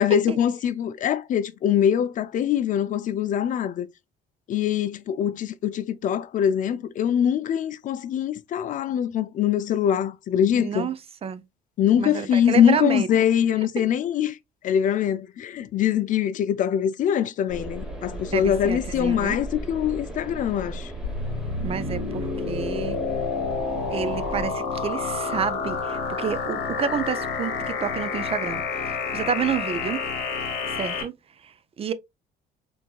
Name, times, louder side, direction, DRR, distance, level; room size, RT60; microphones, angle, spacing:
voice 1, 0.0-3.9 4.5-10.9 11.8-14.4 14.6-20.9, left 9 dB, 50° left, 0.4 m, -23 dB
voice 2, 10.6-10.9 11.2-11.4 12.0-13.3 18.3-19.4 21.6-23.0 23.9-30.0 30.7-31.1 31.4-31.9, right 7 dB, 35° right, 0.4 m, -29 dB
sound 1, 17.5-24.4, right 1 dB, 5° right, 1.0 m, -36 dB
sound 2, 21.0-31.0, left 5 dB, 90° left, 1.3 m, -29 dB
4.4 x 2.7 x 2.3 m
cardioid pair, 110°, 17 cm